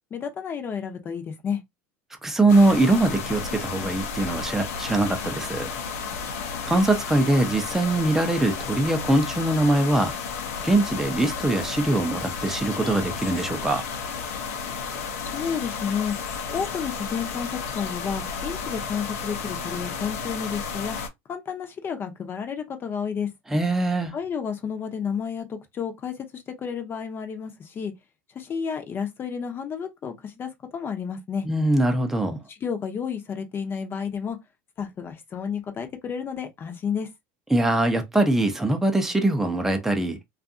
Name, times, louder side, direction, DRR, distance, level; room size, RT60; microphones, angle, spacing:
voice 1, 0.1-1.6 15.2-16.2 16.5-21.0 21.3-23.3 24.1-27.9 28.3-31.5 32.5-34.4 34.8-37.1, left 7 dB, 30° left, 0.7 m, -31 dB
voice 2, 2.2-5.7 6.7-10.2 10.6-13.8 23.5-24.1 31.4-32.4 37.5-40.2, right 2 dB, 5° right, 0.6 m, -22 dB
sound 1, 2.5-21.1, left 5 dB, 85° left, 0.6 m, -32 dB
2.5 x 2.4 x 2.5 m
supercardioid pair, 115°, 7 cm